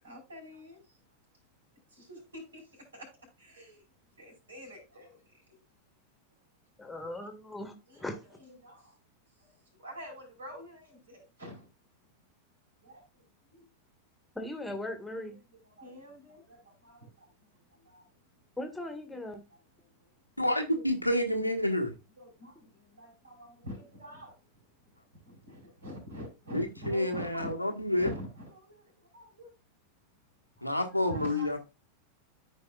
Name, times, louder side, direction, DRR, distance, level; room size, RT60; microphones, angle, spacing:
voice 1, 0.0-1.0 1.9-3.1 3.4-3.8 4.2-5.6 7.9-9.0 9.3-11.7 12.8-13.6 15.1-15.2 15.5-18.2 19.5-20.2 20.7-20.9 22.1-24.7 25.3-28.8 29.1-29.5 30.6-31.6, equal, 70° right, 5.0 m, -47 dB
voice 2, 6.8-8.3 14.3-15.4 18.6-19.4, left 1 dB, 5° left, 1.7 m, -39 dB
voice 3, 20.4-21.9 26.5-28.1 30.6-31.6, left 1 dB, 90° left, 1.5 m, -29 dB
14.0 x 4.9 x 2.4 m
figure-of-eight pair, 90°, 0 cm